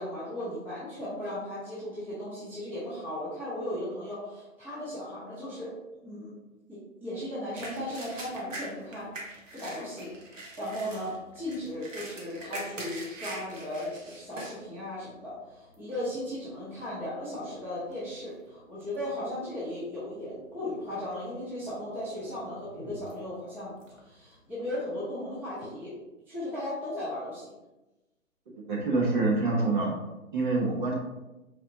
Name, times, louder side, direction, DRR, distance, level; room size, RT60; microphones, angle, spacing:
voice 1, 0.0-5.7 6.0-6.3 6.7-10.1 10.6-23.7 24.0-25.9 26.3-27.5, left 1 dB, 5° right, -10 dB, 0.9 m, -36 dB
sound 1, 7.5-14.6 15.1-15.2 15.7-16.1 16.8-17.0 17.3-18.5 18.8-19.3 19.7-19.8 20.7-21.2 21.6-24.7, right 2 dB, 65° right, 1.4 m, -43 dB
voice 2, 28.7-30.0 30.3-30.9, right 3 dB, 35° right, -3 dB, 1.1 m, -26 dB
4.2 x 4.1 x 2.8 m, 1.0 s
hypercardioid pair, 145°, 41 cm